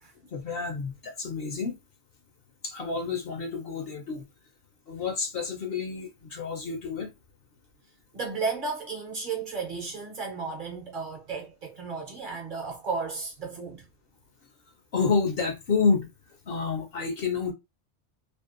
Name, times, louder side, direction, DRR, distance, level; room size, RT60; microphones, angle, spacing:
voice 1, 0.3-1.8 2.6-4.2 4.9-7.1 14.9-16.1 16.5-17.5, left 5 dB, 60° left, 0.7 m, -29 dB
voice 2, 8.1-13.8, right 4 dB, 50° right, 0.7 m, -34 dB
2.6 x 2.0 x 2.4 m
omnidirectional pair, 1.2 m